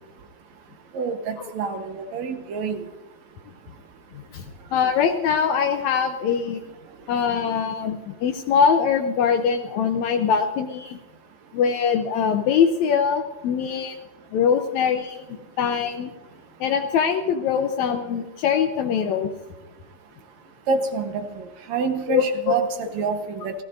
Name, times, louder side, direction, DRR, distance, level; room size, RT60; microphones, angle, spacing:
voice 1, 0.9-2.8 20.7-23.5, right 4 dB, 70° right, 5 dB, 2.4 m, -27 dB
voice 2, 4.7-6.6 7.1-11.0 11.5-14.0 14.3-16.1 16.6-19.3 22.1-22.6, left 7 dB, 80° left, 5 dB, 2.1 m, -22 dB
29.5 x 15.0 x 2.6 m, 1.1 s
omnidirectional pair, 3.4 m